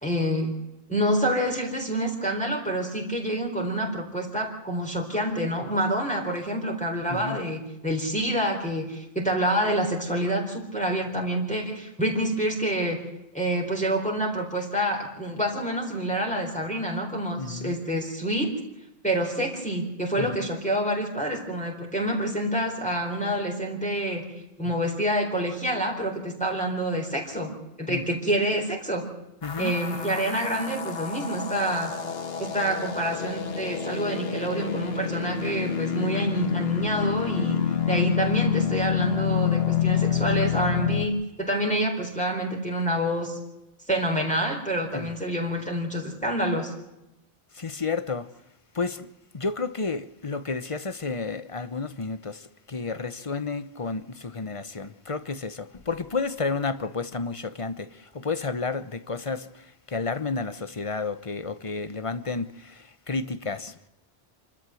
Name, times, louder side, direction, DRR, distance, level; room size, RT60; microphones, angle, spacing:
voice 1, 0.0-0.6 0.9-13.0 13.3-18.5 19.0-24.2 24.6-27.5 27.8-29.1 29.6-31.9 32.4-37.6 37.9-43.4 43.9-46.7, right 1 dB, 5° left, 4.0 m, -27 dB
voice 2, 17.4-17.7 20.2-20.5 27.9-28.0 29.4-29.7 44.9-45.1 47.5-48.3 48.7-49.1 49.3-63.9, left 4 dB, 35° left, 0.9 m, -31 dB
sound 1, 29.4-41.1, left 8 dB, 75° left, 1.6 m, -28 dB
27.5 x 13.5 x 7.7 m
omnidirectional pair, 1.0 m